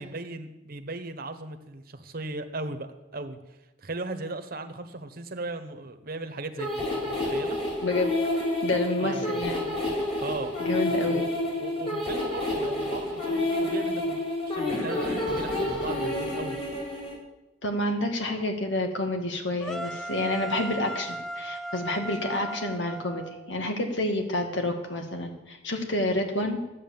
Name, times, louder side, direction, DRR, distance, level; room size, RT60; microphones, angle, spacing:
voice 1, 0.0-3.4 3.8-7.6 9.0-9.4 10.2-10.5 10.8-14.2 14.5-16.6, right 2 dB, 55° right, 7 dB, 1.1 m, -37 dB
sound 1, 6.6-17.1, left 1 dB, 35° left, 4.7 m, -29 dB
voice 2, 7.8-8.1 8.6-9.7 10.6-11.2 17.6-26.6, left 1 dB, 80° left, 4 dB, 2.0 m, -29 dB
sound 2, 19.6-23.7, right 1 dB, 5° left, 0.6 m, -37 dB
13.0 x 8.6 x 7.2 m, 1.0 s
head